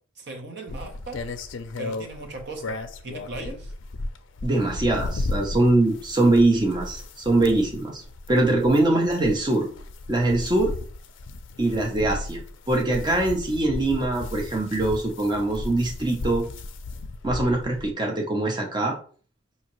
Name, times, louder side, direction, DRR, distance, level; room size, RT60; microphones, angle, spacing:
voice 1, 0.2-1.2 1.8-2.8 3.0-3.7, right 2 dB, 55° right, 4 dB, 0.7 m, -37 dB
sound 1, 0.7-17.9, left 2 dB, 60° left, 0.4 m, -35 dB
voice 2, 4.4-8.0 8.3-9.7 10.1-10.7 11.6-12.4 12.7-16.5 17.2-19.0, right 2 dB, 20° right, 0 dB, 0.7 m, -22 dB
4.8 x 2.8 x 3.0 m, 0.42 s
head